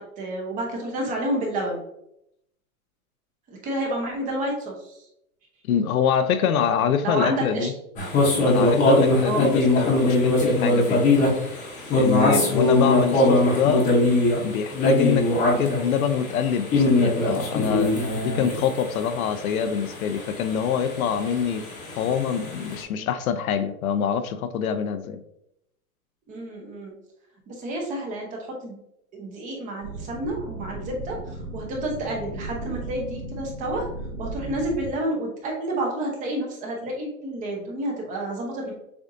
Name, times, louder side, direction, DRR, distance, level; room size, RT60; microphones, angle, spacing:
voice 1, 0.0-1.8 3.5-5.1 7.0-7.7 9.2-9.5 12.3-12.5 26.3-26.9 27.5-28.8 29.1-33.9 34.2-38.7, right 1 dB, 20° right, 0 dB, 0.7 m, -30 dB
voice 2, 5.7-7.7 8.5-11.1 12.0-13.9 14.4-15.3 15.6-21.6 22.0-25.2, left 7 dB, 70° left, 10 dB, 0.6 m, -25 dB
sound 1, 8.0-22.8, left 2 dB, 15° left, 0.9 m, -21 dB
sound 2, 29.8-34.9, right 2 dB, 45° right, 1.6 m, -36 dB
6.9 x 2.6 x 2.6 m, 0.79 s
hypercardioid pair, 150°, 44 cm